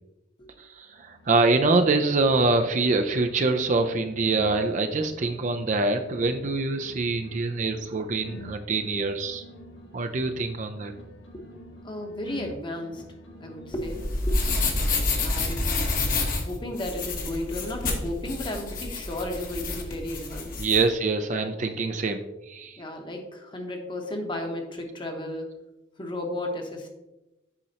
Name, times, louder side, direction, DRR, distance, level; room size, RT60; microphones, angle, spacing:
voice 1, 0.6-9.4 9.9-10.9 20.6-22.8, right 3 dB, 40° right, 7 dB, 0.4 m, -25 dB
sound 1, 0.9-2.5 2.8-6.5 6.8-10.5 10.8-14.5 14.8-16.2, left 1 dB, 85° left, 1.2 m, -47 dB
voice 2, 11.8-14.4 15.1-15.9 16.3-20.6 22.8-25.5 26.0-26.9, left 1 dB, 25° left, 3 dB, 0.9 m, -34 dB
sound 2, 13.7-20.8, left 2 dB, 45° left, 1.0 m, -28 dB
8.3 x 5.3 x 2.8 m, 1.0 s
head